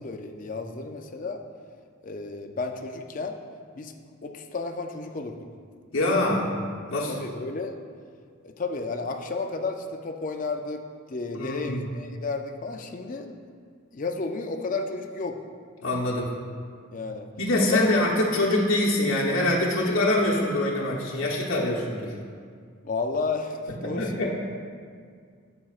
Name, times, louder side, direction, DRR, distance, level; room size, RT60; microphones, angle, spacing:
voice 1, 0.0-1.4 2.0-3.4 3.8-3.9 4.2-5.4 7.1-7.7 8.4-13.4 13.9-15.4 16.9-17.3 17.7-17.9 22.8-24.3, left 3 dB, 40° left, 4 dB, 0.4 m, -32 dB
voice 2, 5.9-6.5 6.9-7.1 11.3-11.9 15.8-16.3 17.3-22.1 23.8-24.3, left 1 dB, 70° left, -4 dB, 1.0 m, -24 dB
9.1 x 7.3 x 2.4 m, 2.1 s
head